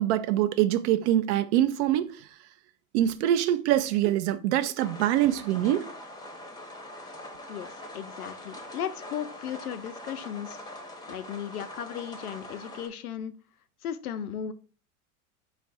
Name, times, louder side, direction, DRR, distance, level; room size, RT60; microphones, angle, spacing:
voice 1, 0.0-2.3 2.9-5.9, right 12 dB, 50° right, 0.5 m, -24 dB
sound 1, 4.8-12.9, left 1 dB, 10° left, 0.7 m, -43 dB
voice 2, 7.5-10.6 11.1-13.3 13.8-14.5, left 9 dB, 80° left, 0.6 m, -36 dB
4.4 x 2.4 x 4.1 m
hypercardioid pair, 95°, 44 cm